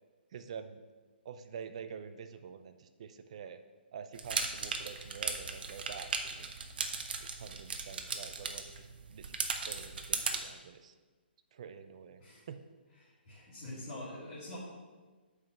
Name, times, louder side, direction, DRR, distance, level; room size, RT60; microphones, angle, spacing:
voice 1, 0.3-0.8 1.2-3.6 3.9-6.5 7.2-10.9 11.5-12.2 12.5-12.6, right 7 dB, 35° right, 9 dB, 0.4 m, -47 dB
sound 1, 4.1-10.4, right 5 dB, 55° right, 0.8 m, -37 dB
voice 2, 13.0-14.6, left 1 dB, 35° left, -10 dB, 1.9 m, -45 dB
5.5 x 4.8 x 6.2 m, 1.3 s
hypercardioid pair, 170°, 6 cm